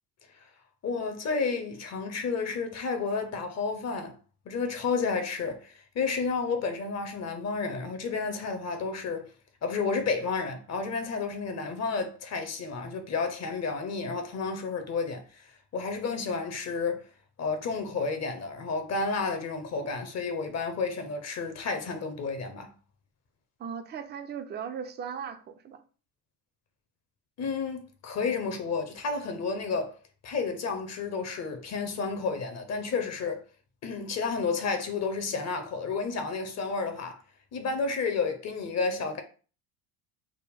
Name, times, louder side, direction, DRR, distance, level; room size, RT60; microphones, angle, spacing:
voice 1, 0.8-4.2 4.5-9.3 9.6-17.0 17.4-22.7 27.4-30.0 30.2-33.4 33.8-37.2 37.5-39.2, left 4 dB, 35° left, 0.7 m, -31 dB
voice 2, 23.6-25.8, right 7 dB, 25° right, 0.4 m, -37 dB
3.5 x 2.1 x 3.5 m
supercardioid pair, 85°, 44 cm